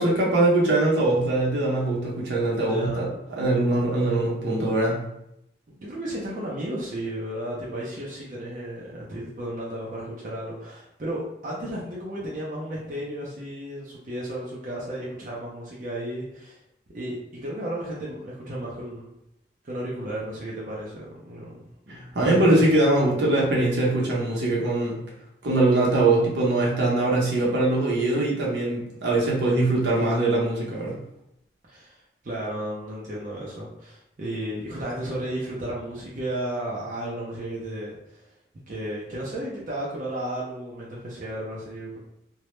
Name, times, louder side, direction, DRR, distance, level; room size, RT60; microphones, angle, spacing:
voice 1, 0.0-5.1 21.9-25.0 25.4-31.0, right 2 dB, 80° right, -3 dB, 0.7 m, -22 dB
voice 2, 2.6-3.1 5.7-16.6 16.9-19.1 19.6-22.6 31.7-32.0 32.2-38.2 38.7-42.0, right 1 dB, 45° right, -5 dB, 0.5 m, -33 dB
2.2 x 2.0 x 3.0 m, 0.80 s
head